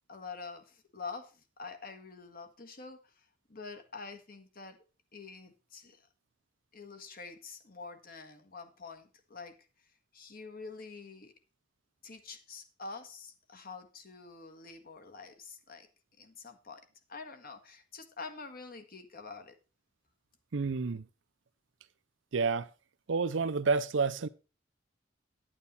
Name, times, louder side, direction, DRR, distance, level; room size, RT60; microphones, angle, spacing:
voice 1, 0.1-4.8 5.1-6.1 6.7-9.5 10.1-11.3 12.0-15.9 16.2-16.8 17.1-19.5, left 4 dB, 50° left, 1.6 m, -46 dB
voice 2, 20.5-21.0 22.3-22.7 23.1-24.3, right 4 dB, 85° right, 0.6 m, -29 dB
9.5 x 8.9 x 4.2 m
head